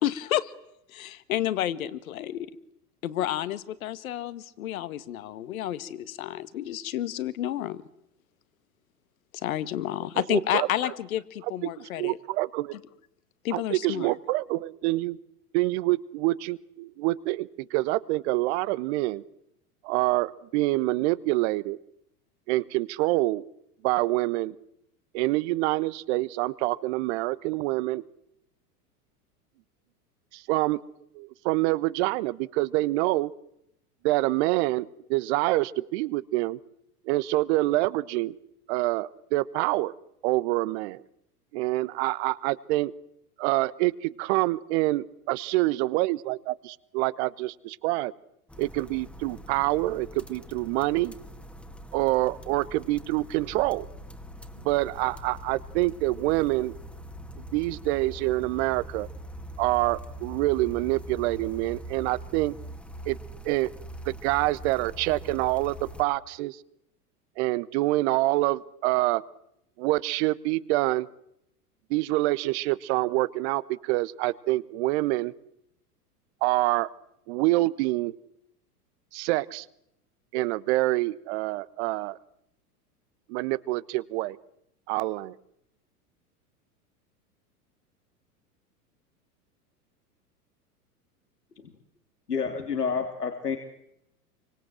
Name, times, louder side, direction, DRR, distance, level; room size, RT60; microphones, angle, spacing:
voice 1, 0.0-0.5 0.9-2.5 3.0-7.8 9.3-12.2 13.4-14.1, left 12 dB, 60° left, 14 dB, 1.9 m, -30 dB
voice 2, 10.3-10.7 11.6-12.8 13.5-15.2 15.5-19.2 19.8-21.8 22.5-23.4 23.8-24.5 25.1-28.0 30.3-30.8 31.1-33.3 34.0-36.6 37.0-38.4 38.7-39.9 40.2-41.0 41.5-42.9 43.4-48.1 48.6-51.1 51.9-53.9 54.6-56.7 57.4-59.1 59.6-62.5 63.0-63.2 63.4-63.7 64.0-66.6 67.4-69.2 69.8-71.1 71.9-75.3 76.4-76.9 77.3-78.1 79.1-79.7 80.3-82.2 83.3-84.4 84.9-85.3, right 19 dB, 45° right, 18 dB, 1.2 m, -26 dB
sound 1, 48.5-66.0, right 1 dB, 5° left, 2.1 m, -43 dB
voice 3, 92.3-93.6, left 5 dB, 80° left, 4 dB, 2.9 m, -29 dB
28.5 x 25.0 x 7.7 m, 0.79 s
figure-of-eight pair, 90°, 46 cm